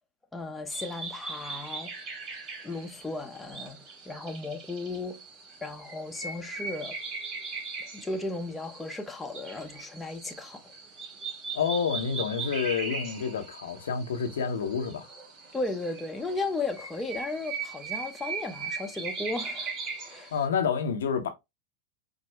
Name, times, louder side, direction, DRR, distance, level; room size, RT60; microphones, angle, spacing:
voice 1, 0.3-1.9 2.6-5.2 5.6-7.0 7.8-10.7 15.5-19.7 20.0-20.3, left 3 dB, 10° left, 0.7 m, -35 dB
sound 1, 0.7-20.4, right 4 dB, 35° right, 2.2 m, -39 dB
voice 2, 11.5-15.1 20.3-21.3, left 6 dB, 80° left, 0.7 m, -29 dB
4.5 x 2.0 x 3.2 m
hypercardioid pair, 100°, 0 cm